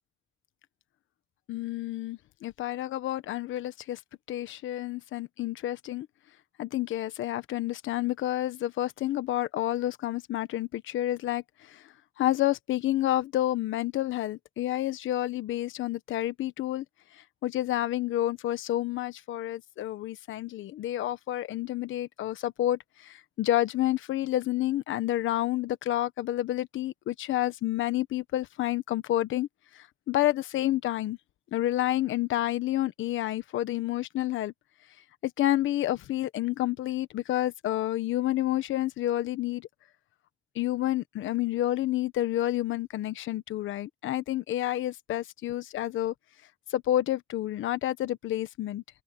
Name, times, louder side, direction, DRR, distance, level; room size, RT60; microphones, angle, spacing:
voice 1, 1.5-4.0 4.3-6.1 6.6-16.8 17.1-29.5 29.7-31.2 31.5-34.5 35.2-39.7 40.5-46.1 46.7-48.8, left 14 dB, 80° left, 1.2 m, -29 dB
cardioid pair, 90°, 20 cm